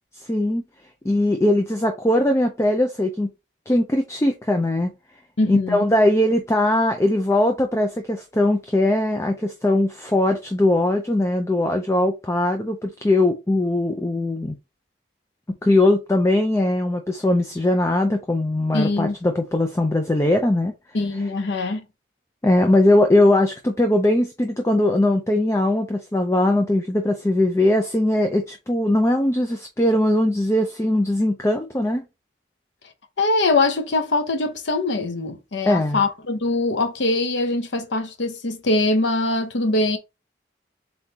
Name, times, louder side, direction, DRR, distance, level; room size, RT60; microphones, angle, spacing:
voice 1, 0.3-0.6 1.0-3.3 3.7-4.9 5.5-14.5 15.5-20.7 22.4-32.0 35.6-36.0, left 1 dB, 15° left, 0.4 m, -20 dB
voice 2, 5.4-5.9 18.7-19.2 20.9-21.9 33.2-40.0, left 2 dB, 75° left, 0.8 m, -22 dB
3.9 x 3.7 x 2.8 m
head